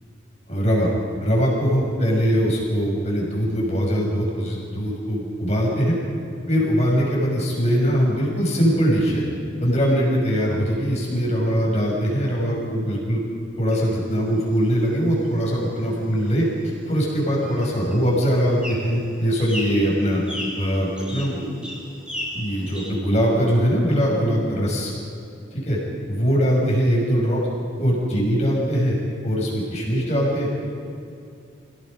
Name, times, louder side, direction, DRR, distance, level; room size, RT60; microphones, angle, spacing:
voice 1, 0.5-0.9 1.2-6.0 6.5-9.2 9.6-13.2 13.6-16.5 16.9-20.2 20.6-21.4 22.3-24.9 25.6-25.8 26.1-27.4 27.8-29.0 29.2-30.5, equal, 35° left, -3 dB, 6.3 m, -21 dB
sound 1, 13.7-22.9, equal, 5° right, 5.0 m, -38 dB
28.5 x 17.5 x 5.4 m, 2.5 s
head